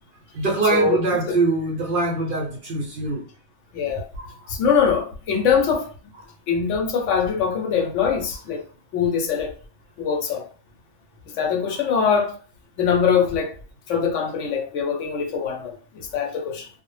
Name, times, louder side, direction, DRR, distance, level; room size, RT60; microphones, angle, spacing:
voice 1, 0.3-3.3 4.2-4.4 11.7-11.8, right 3 dB, 60° right, 0.6 m, -23 dB
voice 2, 3.7-4.1 4.5-5.9 6.5-8.6 8.9-9.5 10.0-10.4 11.4-12.3 12.8-13.5 13.9-16.7, left 6 dB, 80° left, 0.9 m, -22 dB
2.1 x 2.0 x 3.0 m
omnidirectional pair, 1.3 m